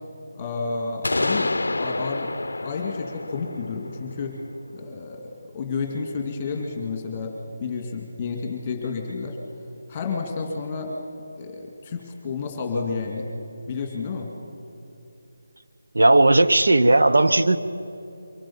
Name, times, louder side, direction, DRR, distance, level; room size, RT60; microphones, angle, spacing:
voice 1, 0.3-2.3 2.6-4.4 4.7-7.4 7.6-9.4 9.9-10.9 11.4-13.3 13.7-14.3, left 4 dB, 25° left, 2.2 m, -30 dB
sound 1, 1.0-4.8, left 2 dB, 85° left, 0.5 m, -28 dB
voice 2, 15.9-17.6, right 2 dB, 80° right, 1.0 m, -16 dB
24.0 x 16.5 x 7.1 m
figure-of-eight pair, 165°, 0 cm